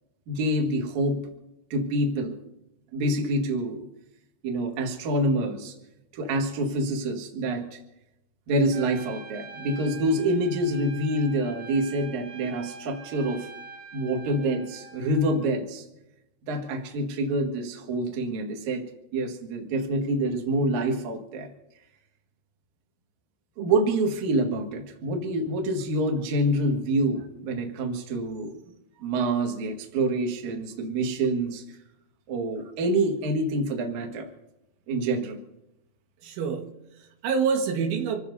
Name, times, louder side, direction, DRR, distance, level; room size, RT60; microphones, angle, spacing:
voice 1, 0.3-1.2 1.7-2.4 2.9-3.9 4.4-5.7 6.1-7.8 8.5-13.5 13.9-15.8 16.5-18.8 19.1-21.5 23.6-28.6 29.0-31.8 32.3-34.3 34.9-35.4, right 1 dB, 50° right, 2 dB, 2.6 m, -26 dB
Trumpet, 8.7-15.4, right 4 dB, 70° right, 3.7 m, -44 dB
voice 2, 36.2-38.2, right 6 dB, 90° right, 3 dB, 4.1 m, -27 dB
27.0 x 15.5 x 2.8 m, 0.91 s
omnidirectional pair, 5.2 m